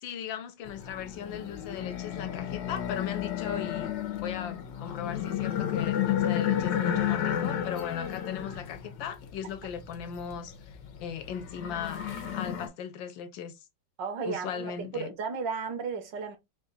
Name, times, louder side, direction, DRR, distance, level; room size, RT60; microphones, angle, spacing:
voice 1, 0.0-3.9 4.2-12.0 12.3-13.5 14.2-15.1, left 8 dB, 90° left, 1.5 m, -38 dB
sound 1, 0.7-12.7, left 10 dB, 75° left, 1.5 m, -32 dB
voice 2, 14.0-16.4, right 5 dB, 75° right, 1.7 m, -34 dB
4.2 x 2.5 x 3.9 m
omnidirectional pair, 2.0 m